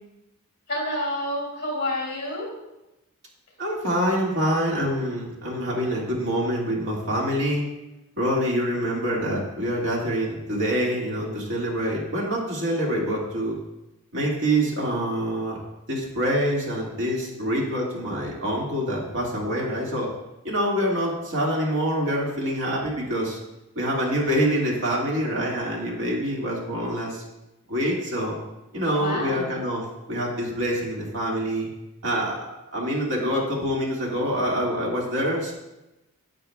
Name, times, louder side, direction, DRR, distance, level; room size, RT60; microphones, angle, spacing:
voice 1, 0.7-2.4 29.0-29.5, left 1 dB, 50° left, -4 dB, 3.1 m, -28 dB
voice 2, 3.6-7.6 8.2-13.5 14.1-15.6 15.9-20.1 20.4-23.4 23.8-27.2 27.7-28.4 28.7-31.7 32.0-32.4 32.7-35.5, equal, 60° right, -3 dB, 2.0 m, -26 dB
9.6 x 8.8 x 2.3 m, 0.96 s
head